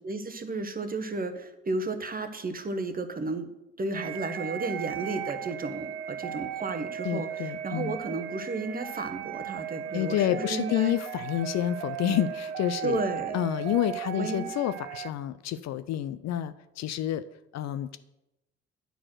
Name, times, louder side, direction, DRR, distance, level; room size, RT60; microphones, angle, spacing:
voice 1, 0.0-3.5 3.8-11.0 12.8-13.4 14.2-14.5, right 3 dB, 25° right, 9 dB, 1.0 m, -33 dB
sound 1, 3.9-15.1, right 10 dB, 70° right, 0.5 m, -37 dB
voice 2, 7.0-8.0 9.9-13.0 13.3-17.2 17.5-18.0, left 11 dB, 50° left, 13 dB, 0.5 m, -29 dB
9.1 x 4.3 x 6.1 m, 0.92 s
hypercardioid pair, 55°, 34 cm